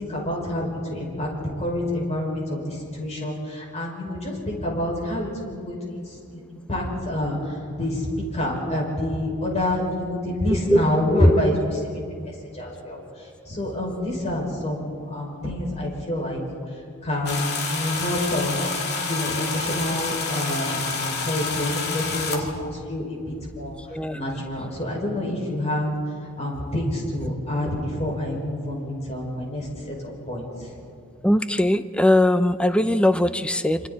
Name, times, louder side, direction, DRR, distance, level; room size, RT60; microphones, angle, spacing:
voice 1, 0.0-8.1 8.3-16.4 16.7-18.7 19.0-30.0 30.3-30.7, left 1 dB, 30° left, -2 dB, 5.7 m, -28 dB
voice 2, 10.7-11.4 23.9-24.4 31.2-33.8, left 1 dB, 5° left, 11 dB, 0.6 m, -20 dB
sound 1, 17.3-22.4, left 4 dB, 50° left, 2.4 m, -28 dB
27.0 x 26.5 x 4.2 m, 2.3 s
head